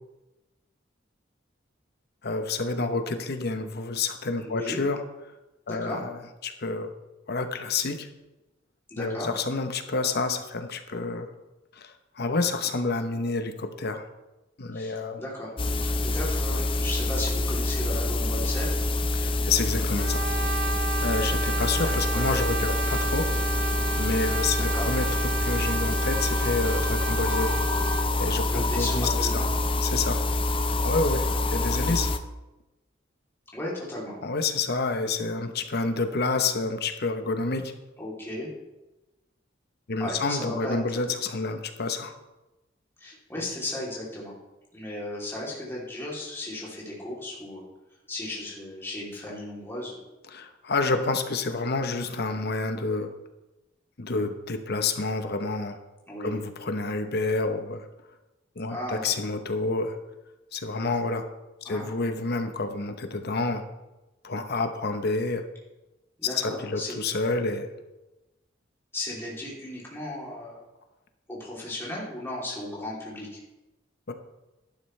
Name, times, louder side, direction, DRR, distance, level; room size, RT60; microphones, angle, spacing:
voice 1, 2.2-5.0 5.7-6.9 7.3-8.1 9.0-11.3 11.7-14.0 14.6-15.2 19.1-20.3 21.0-27.5 27.8-27.9 28.2-29.5 29.8-30.2 30.8-32.1 34.2-37.7 39.9-42.1 50.3-53.1 54.0-55.8 56.2-57.9 58.6-60.0 60.5-61.3 61.6-63.6 64.2-65.4 66.2-67.7 74.1-74.2, left 3 dB, 55° left, 7 dB, 0.9 m, -29 dB
voice 2, 4.4-4.8 5.7-6.0 8.9-9.3 14.7-15.5 16.0-18.7 21.8-22.3 24.6-24.9 28.5-29.5 33.5-34.1 38.0-38.5 40.0-41.0 43.0-44.3 44.7-47.6 48.1-50.0 56.1-56.3 58.7-59.1 61.6-61.9 66.2-67.0 68.9-70.6 71.3-73.3, left 1 dB, 15° left, -5 dB, 3.0 m, -35 dB
sound 1, 15.6-32.2, left 2 dB, 30° left, 0.6 m, -26 dB
Brass instrument, 20.0-28.1, right 6 dB, 55° right, 0.4 m, -33 dB
12.5 x 11.5 x 3.3 m, 1.0 s
head